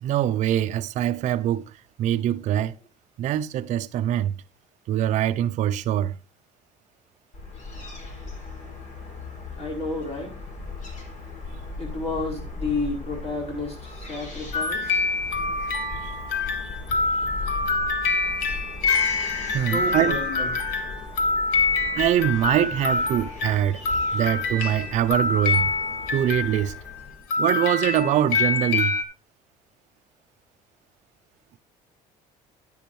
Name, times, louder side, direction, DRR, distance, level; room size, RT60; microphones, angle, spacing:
voice 1, 0.0-1.7 2.0-2.7 3.2-4.3 4.9-6.2 16.0-16.1 16.6-16.7 19.5-20.2 21.9-23.8 24.1-25.7 26.1-26.7 27.4-28.9, right 11 dB, 55° right, 0.4 m, -23 dB
Fowl / Gull seagull, 7.3-27.2, left 3 dB, 60° left, 3.4 m, -38 dB
voice 2, 9.6-10.3 11.8-15.0 19.6-20.5, left 2 dB, 45° left, 4.8 m, -31 dB
sound 1, 14.5-27.0 27.3-29.0, left 4 dB, 85° left, 1.7 m, -26 dB
10.0 x 10.0 x 3.1 m
supercardioid pair, 95°, 15 cm